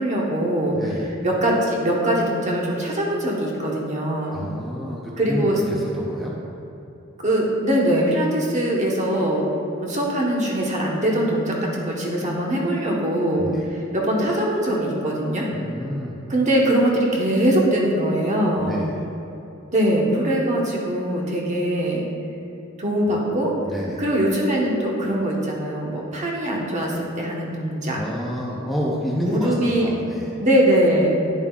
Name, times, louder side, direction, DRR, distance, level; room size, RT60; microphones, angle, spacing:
voice 1, 0.0-0.8 1.2-4.4 5.2-5.6 7.2-9.5 9.8-15.5 16.3-18.9 19.7-22.0 22.8-23.5 24.0-28.0 29.2-29.9 30.4-31.2, right 1 dB, 35° right, -2 dB, 1.1 m, -22 dB
voice 2, 0.7-1.1 4.3-6.4 13.4-13.7 15.5-16.2 18.6-19.0 23.6-24.0 28.0-30.4, equal, ahead, -5 dB, 0.6 m, -29 dB
10.5 x 7.2 x 2.4 m, 2.9 s
head